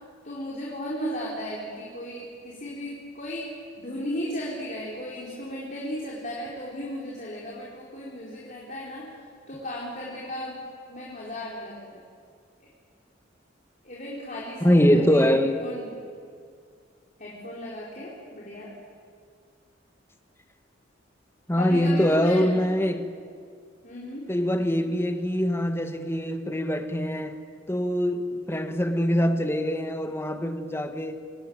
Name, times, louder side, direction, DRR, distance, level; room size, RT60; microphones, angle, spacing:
voice 1, 0.2-9.1 9.5-10.6 10.9-12.0 12.6-12.7 13.8-16.0 17.2-18.7 21.6-22.5 23.8-24.2, equal, 45° left, 4.4 m, -35 dB
voice 2, 14.6-15.7 21.5-23.1 24.3-27.4 27.7-31.2, equal, 15° left, 1.4 m, -23 dB
26.5 x 18.5 x 9.5 m
head